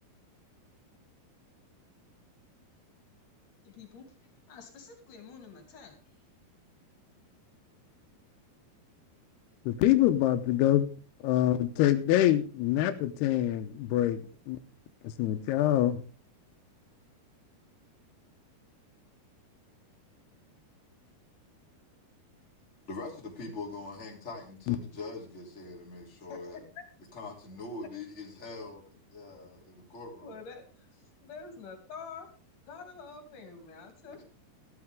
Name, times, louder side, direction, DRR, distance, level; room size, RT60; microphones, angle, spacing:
voice 1, 3.6-4.1 4.5-6.0 26.3-26.4 26.8-26.9 30.2-30.9 31.2-32.3 32.6-34.2, left 5 dB, 55° left, 4.2 m, -47 dB
voice 2, 9.7-10.9 11.2-14.6 15.0-16.0 24.7-24.8, left 13 dB, 85° left, 2.9 m, -25 dB
voice 3, 22.9-26.6 27.1-28.8 29.1-30.4 34.1-34.2, left 3 dB, 20° left, 3.4 m, -42 dB
14.5 x 12.5 x 3.6 m
omnidirectional pair, 4.6 m